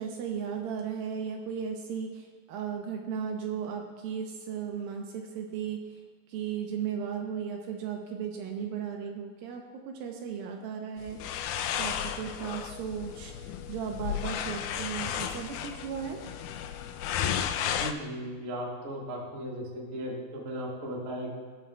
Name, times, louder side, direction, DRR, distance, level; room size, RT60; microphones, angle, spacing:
voice 1, 0.0-6.0 6.3-11.4 11.8-13.3 13.7-16.2, right 7 dB, 75° right, 2 dB, 2.3 m, -36 dB
sound 1, 11.0-17.9, left 9 dB, 80° left, 2.2 m, -33 dB
voice 2, 17.7-21.3, equal, 45° right, -3 dB, 1.3 m, -36 dB
20.5 x 7.4 x 2.3 m, 1.5 s
omnidirectional pair, 4.5 m